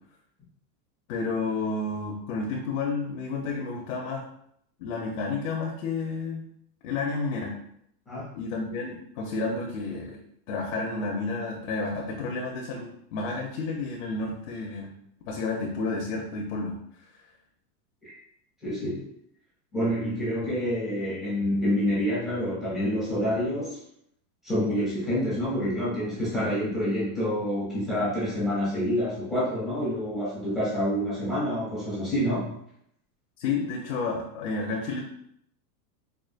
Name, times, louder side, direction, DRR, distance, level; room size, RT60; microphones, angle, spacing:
voice 1, 1.1-4.2 4.8-6.4 6.8-7.5 8.3-10.2 10.5-14.9 15.2-16.7 33.4-35.0, left 3 dB, 55° left, -1 dB, 0.7 m, -31 dB
voice 2, 18.6-19.1 19.7-23.8 24.4-32.6, equal, 5° left, -12 dB, 0.3 m, -27 dB
4.9 x 2.4 x 2.4 m, 0.71 s
supercardioid pair, 170°, 48 cm